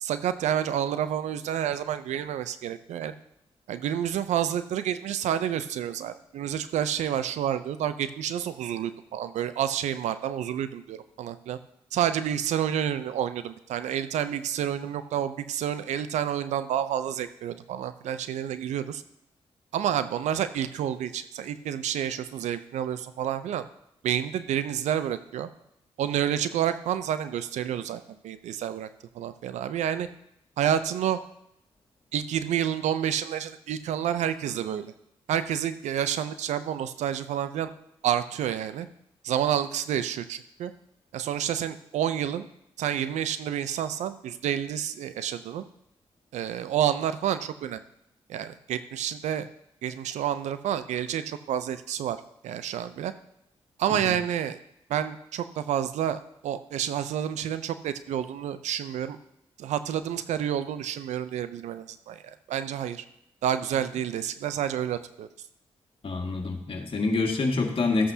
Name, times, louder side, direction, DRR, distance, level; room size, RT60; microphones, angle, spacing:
voice 1, 0.0-3.1 3.7-11.6 11.9-19.0 19.7-23.6 24.0-25.5 26.0-28.9 29.1-30.1 30.6-31.2 32.1-34.9 35.3-37.7 38.0-38.9 39.2-40.7 41.1-42.5 42.8-45.6 46.3-47.8 48.3-49.5 49.8-52.2 52.4-53.1 53.8-54.6 54.9-59.2 59.6-63.0 63.4-65.3, right 10 dB, 80° right, 12 dB, 0.6 m, -29 dB
voice 2, 66.0-68.1, left 3 dB, 50° left, 2 dB, 1.9 m, -26 dB
14.0 x 8.1 x 2.8 m, 0.79 s
supercardioid pair, 45°, 12 cm